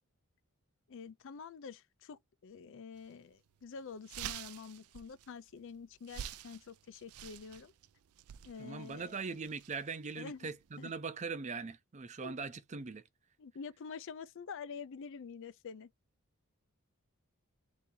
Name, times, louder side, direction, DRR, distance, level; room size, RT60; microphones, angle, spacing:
voice 1, 0.9-7.7 8.4-9.2 10.2-10.5 10.8-10.9 12.2-12.4 13.4-15.9, left 5 dB, 60° left, 0.4 m, -47 dB
sound 1, 3.0-3.1 3.5-3.6 3.9-10.9, right 10 dB, 85° right, 0.4 m, -49 dB
voice 2, 8.6-13.0, right 4 dB, 35° right, 0.5 m, -41 dB
4.1 x 2.7 x 3.8 m
head